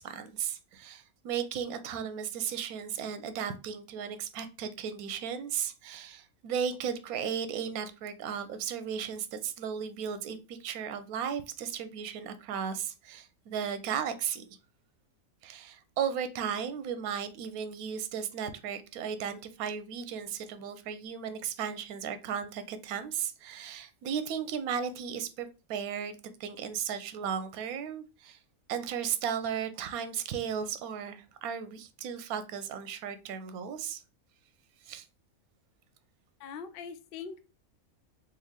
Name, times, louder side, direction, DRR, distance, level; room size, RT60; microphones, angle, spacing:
voice 1, 0.0-14.4 15.4-28.4 28.7-34.0 34.8-35.0, right 8 dB, 85° right, 1.0 m, -35 dB
voice 2, 36.4-37.4, left 6 dB, 70° left, 0.5 m, -42 dB
3.2 x 3.1 x 3.6 m
omnidirectional pair, 1.5 m